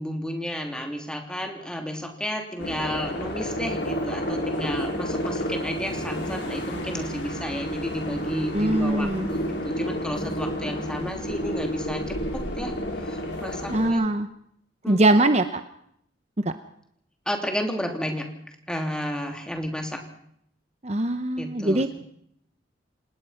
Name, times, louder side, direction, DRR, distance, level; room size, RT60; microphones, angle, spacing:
voice 1, 0.0-12.7 13.0-14.0 14.8-15.0 17.2-18.3 18.7-20.0 21.4-22.0, equal, 5° left, 3 dB, 3.2 m, -32 dB
sound 1, 2.6-13.9, equal, 60° left, 5.4 m, -30 dB
voice 2, 8.5-9.3 13.7-14.3 14.9-15.6 16.4-16.5 20.8-21.9, right 2 dB, 35° right, 9 dB, 0.9 m, -22 dB
27.5 x 19.5 x 5.8 m, 0.70 s
head